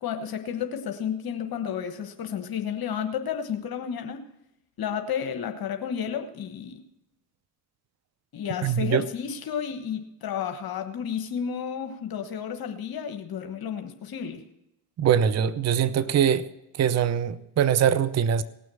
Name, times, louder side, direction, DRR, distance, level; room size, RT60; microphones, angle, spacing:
voice 1, 0.0-4.2 4.8-6.7 8.3-14.4, left 8 dB, 45° left, 1.3 m, -32 dB
voice 2, 8.6-9.0 15.0-16.5 16.7-18.4, right 8 dB, 30° right, 0.7 m, -22 dB
18.0 x 6.3 x 7.0 m
hypercardioid pair, 75°, 50 cm